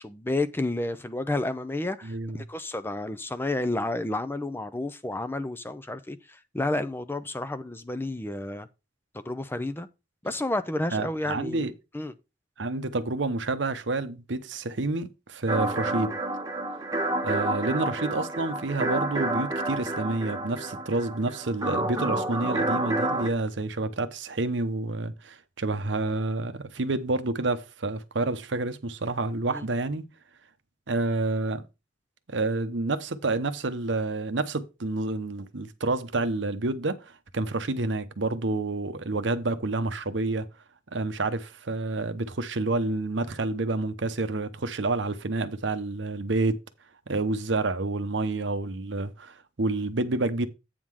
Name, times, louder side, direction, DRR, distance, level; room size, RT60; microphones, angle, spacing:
voice 1, 0.0-6.2 6.5-8.7 9.1-9.9 10.2-11.7 11.9-12.1 29.5-29.6, left 2 dB, 10° left, 0.5 m, -30 dB
voice 2, 2.0-2.4 10.9-11.7 12.6-16.1 17.2-30.0 30.9-31.6 32.3-40.5 40.9-46.6 47.1-50.5, right 2 dB, 70° right, 0.8 m, -29 dB
sound 1, 15.5-23.3, right 2 dB, 20° right, 0.9 m, -29 dB
8.7 x 3.7 x 6.2 m
head